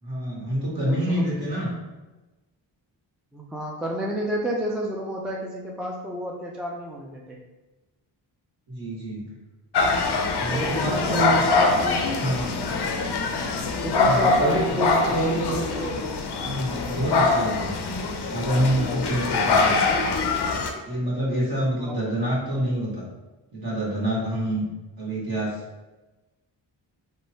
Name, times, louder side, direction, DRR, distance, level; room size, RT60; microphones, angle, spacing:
voice 1, 0.0-1.7 8.7-9.4 10.4-11.4 12.2-12.6 14.0-15.7 16.4-17.7 18.2-19.8 20.8-23.0 23.5-24.7 25.0-25.6, right 1 dB, 45° right, -6 dB, 1.5 m, -27 dB
voice 2, 0.8-1.3 3.3-7.4 10.5-12.3 13.8-16.2 21.8-22.0, equal, ahead, -2 dB, 0.3 m, -31 dB
sound 1, 9.7-20.7, left 3 dB, 55° left, 0.5 m, -24 dB
3.1 x 2.2 x 2.7 m, 1.1 s
cardioid pair, 50°, 49 cm